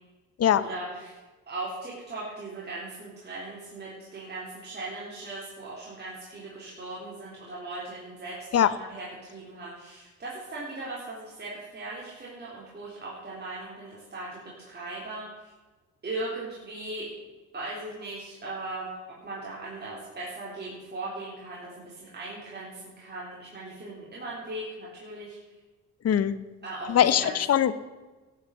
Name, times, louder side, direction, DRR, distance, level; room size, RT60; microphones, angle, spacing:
voice 1, 0.6-1.2 1.5-15.5 16.0-17.1 17.5-19.0 19.2-25.4 26.6-27.4, right 2 dB, 35° right, -6 dB, 3.7 m, -38 dB
voice 2, 26.0-26.4 26.9-27.7, left 10 dB, 55° left, 15 dB, 0.8 m, -21 dB
13.0 x 7.3 x 7.9 m, 1.3 s
cardioid pair, 90°, 30 cm